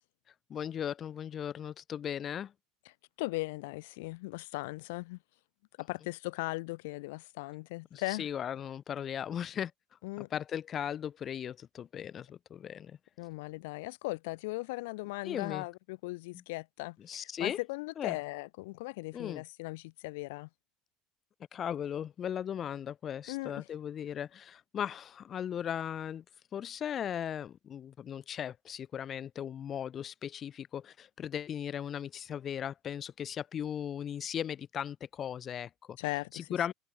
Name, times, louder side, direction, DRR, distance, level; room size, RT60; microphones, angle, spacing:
voice 1, 0.5-2.5 7.9-9.7 10.2-13.0 15.2-15.6 17.0-17.6 18.0-18.2 19.1-19.4 21.5-26.2 26.5-36.0 36.3-36.7, left 9 dB, 35° left, 0.7 m, -37 dB
voice 2, 3.2-5.2 5.8-8.3 10.0-10.3 13.2-20.5 23.3-23.7 36.0-36.7, left 23 dB, 85° left, 2.3 m, -38 dB
cardioid pair, 140°, 0 cm